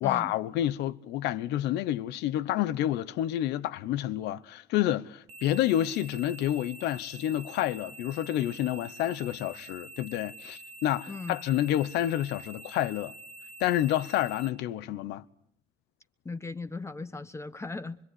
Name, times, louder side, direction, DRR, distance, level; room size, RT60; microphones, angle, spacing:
voice 1, 0.0-13.1 13.6-15.2, left 13 dB, 85° left, 1.1 m, -29 dB
sound 1, 5.3-14.5, right 2 dB, 40° right, 1.3 m, -47 dB
voice 2, 16.2-18.0, left 3 dB, 15° left, 1.3 m, -38 dB
25.0 x 24.0 x 9.7 m
cardioid pair, 110°, 17 cm